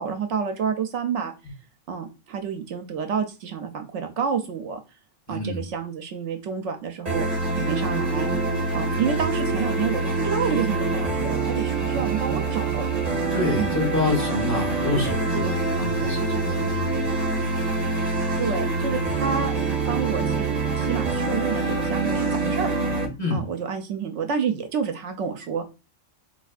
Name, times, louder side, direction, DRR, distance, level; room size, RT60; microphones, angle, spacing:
voice 1, 0.0-1.3 1.9-4.8 5.3-7.3 7.5-8.3 8.7-12.8 13.6-13.7 18.4-19.6 19.9-22.7 23.3-25.6, right 6 dB, 75° right, 0.9 m, -29 dB
voice 2, 5.3-5.6 8.9-9.3 13.3-17.1 23.2-23.5, left 2 dB, 15° left, 1.4 m, -28 dB
sound 1, 7.1-23.1, right 3 dB, 35° right, 0.9 m, -25 dB
4.2 x 2.7 x 2.3 m
omnidirectional pair, 1.3 m